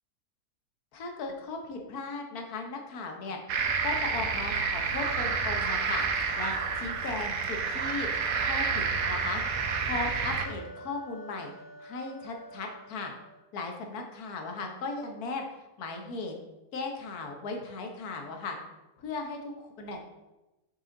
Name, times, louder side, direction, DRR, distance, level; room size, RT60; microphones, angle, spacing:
voice 1, 0.9-3.4 3.8-6.0 6.4-8.1 8.4-9.4 9.8-11.5 11.8-13.1 13.5-15.4 15.8-16.3 16.7-18.6 19.0-20.0, left 3 dB, 75° left, 3 dB, 1.5 m, -37 dB
sound 1, 3.5-13.5, left 1 dB, 25° left, 1.6 m, -49 dB
sound 2, 3.5-10.4, right 5 dB, 70° right, 1.1 m, -29 dB
6.5 x 4.8 x 3.8 m, 1.0 s
omnidirectional pair, 1.6 m